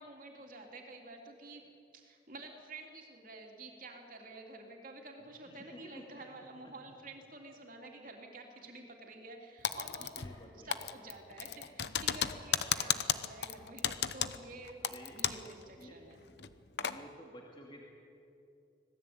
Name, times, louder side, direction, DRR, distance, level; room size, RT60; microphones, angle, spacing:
voice 1, 0.0-1.6 1.9-14.8 15.1-16.2, right 2 dB, 45° right, 2 dB, 3.2 m, -50 dB
voice 2, 5.2-6.3 10.2-10.9 12.5-13.0 14.8-15.2 15.7-16.0 16.3-16.5 16.8-17.8, equal, 25° left, -2 dB, 2.5 m, -53 dB
Typing, 9.6-10.4 10.7-15.5 15.8-15.9 16.4-17.0, left 8 dB, 60° left, 0.9 m, -34 dB
26.0 x 18.0 x 8.8 m, 2.7 s
head